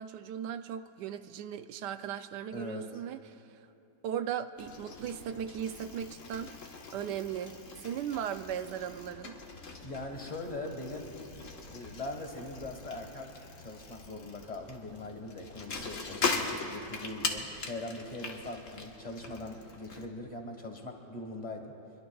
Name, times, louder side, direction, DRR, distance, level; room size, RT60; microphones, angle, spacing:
voice 1, 0.0-3.2 3.5-3.6 4.0-9.4, right 9 dB, 70° right, 10 dB, 1.1 m, -37 dB
voice 2, 2.5-2.9 9.8-11.1 11.7-13.3 13.6-21.8, left 2 dB, 25° left, 2 dB, 1.5 m, -41 dB
Bicycle, 4.6-20.1, left 4 dB, 45° left, 1.5 m, -40 dB
25.0 x 21.5 x 2.4 m, 2.7 s
omnidirectional pair, 2.0 m